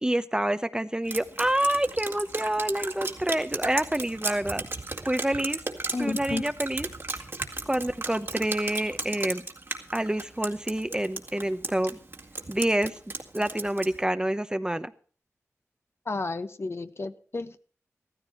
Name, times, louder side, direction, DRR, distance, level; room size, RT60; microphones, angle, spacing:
voice 1, 0.0-4.6 5.0-5.6 6.0-6.9 7.7-9.5 9.9-12.0 12.5-14.9, right 1 dB, 15° right, 12 dB, 0.9 m, -27 dB
Drip, 1.1-14.0, right 2 dB, 45° right, 2.2 m, -35 dB
voice 2, 5.9-6.4 16.0-17.6, left 3 dB, 50° left, 10 dB, 1.1 m, -32 dB
15.0 x 14.0 x 4.5 m, 0.41 s
wide cardioid pair, 65°, 5 cm